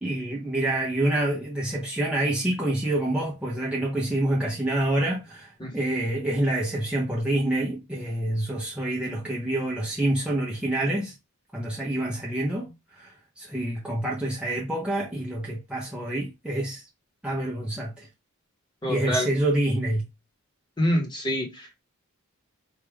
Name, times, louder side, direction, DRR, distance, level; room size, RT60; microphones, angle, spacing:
voice 1, 0.0-11.1 11.5-16.9 17.2-18.1 18.9-20.1, right 1 dB, 5° right, 0.7 m, -27 dB
voice 2, 18.8-19.3 20.8-21.8, equal, 20° left, 1.1 m, -26 dB
4.5 x 2.4 x 3.5 m
head